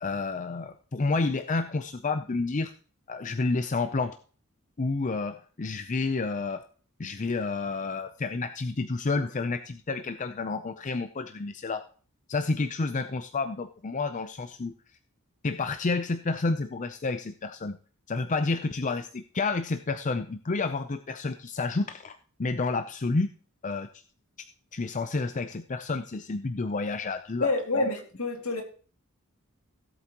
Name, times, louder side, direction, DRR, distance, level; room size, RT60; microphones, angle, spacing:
voice 1, 0.0-2.7 3.1-4.1 4.8-6.6 7.0-11.8 12.3-14.7 15.4-17.8 18.1-23.3 23.6-23.9 24.7-27.9, left 3 dB, 35° left, 8 dB, 0.5 m, -30 dB
voice 2, 27.4-28.6, left 2 dB, 75° left, 3 dB, 2.3 m, -28 dB
17.0 x 8.0 x 3.0 m, 0.40 s
head